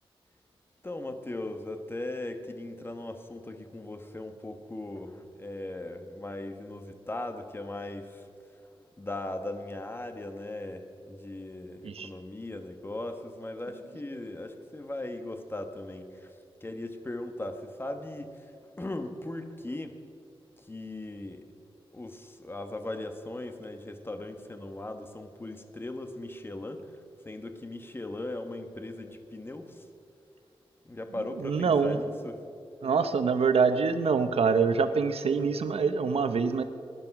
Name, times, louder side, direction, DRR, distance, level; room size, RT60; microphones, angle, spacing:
voice 1, 0.8-8.3 8.6-20.0 20.6-21.5 21.9-26.9 27.2-29.9 30.8-32.4, left 2 dB, 20° left, 7 dB, 1.2 m, -38 dB
voice 2, 31.4-32.0 32.8-36.6, right 5 dB, 85° right, 10 dB, 0.9 m, -25 dB
18.5 x 10.5 x 5.9 m, 2.5 s
wide cardioid pair, 105°, 10 cm